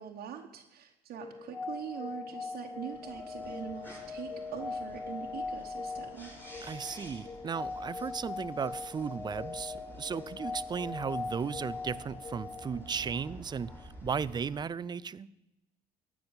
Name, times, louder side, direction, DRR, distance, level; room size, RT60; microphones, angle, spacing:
voice 1, 0.0-6.3, right 9 dB, 65° right, 1.1 m, -43 dB
sound 1, 1.1-13.9, left 4 dB, 30° left, 4.6 m, -41 dB
sound 2, 2.7-14.6, equal, 10° left, 3.5 m, -52 dB
voice 2, 6.6-15.3, right 6 dB, 25° right, 0.4 m, -36 dB
14.0 x 6.1 x 8.7 m
cardioid pair, 110°, 17 cm